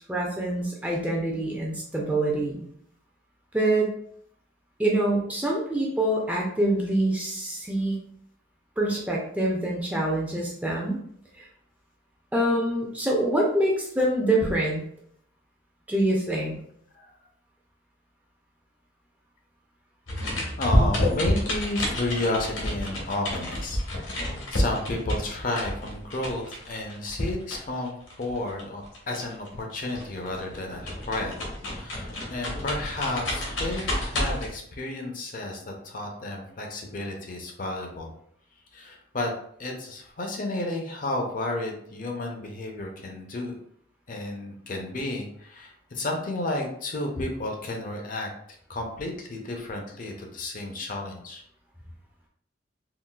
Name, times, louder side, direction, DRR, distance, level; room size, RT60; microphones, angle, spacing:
voice 1, 0.0-2.6 3.5-3.9 4.8-8.0 8.8-11.0 11.4-11.5 12.3-14.8 15.9-16.5, right 1 dB, 10° right, -3 dB, 0.4 m, -25 dB
sound 1, 20.1-29.6 29.9-34.5, left 1 dB, 70° left, 0.9 m, -29 dB
voice 2, 20.6-31.3 31.7-38.1 38.7-39.3 39.6-43.6 44.1-48.3 48.7-51.4, left 2 dB, 40° left, 2 dB, 0.5 m, -32 dB
3.8 x 2.4 x 2.3 m, 0.68 s
head